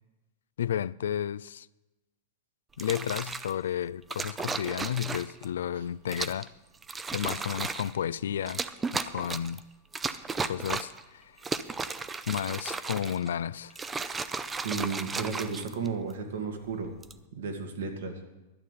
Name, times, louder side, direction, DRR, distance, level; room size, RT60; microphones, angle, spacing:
voice 1, 0.6-1.7 2.8-6.5 7.1-8.6 9.1-9.6 10.4-11.4 12.3-13.8, left 9 dB, 85° left, 0.3 m, -32 dB
sound 1, 2.7-3.5 4.1-5.4 6.1-6.5 6.8-7.9 8.4-9.6 9.9-11.0 11.4-13.3 13.7-16.1 16.8-17.2, right 4 dB, 15° right, 0.5 m, -34 dB
voice 2, 14.6-16.9 17.3-18.2, right 5 dB, 85° right, 2.1 m, -33 dB
12.0 x 6.8 x 9.2 m
hypercardioid pair, 135°, 0 cm